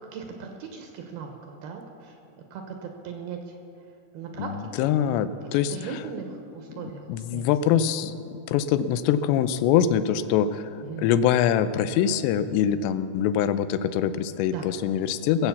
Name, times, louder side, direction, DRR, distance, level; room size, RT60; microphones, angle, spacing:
voice 1, 0.1-2.2 2.5-3.5 4.1-4.5 5.7-7.4 10.8-11.1 14.5-14.7, right 6 dB, 70° right, 3 dB, 2.6 m, -38 dB
voice 2, 4.4-6.0 7.1-8.1 8.5-10.7 11.0-15.5, left 9 dB, 85° left, 12 dB, 2.8 m, -24 dB
20.0 x 7.9 x 7.0 m, 2.7 s
omnidirectional pair, 5.0 m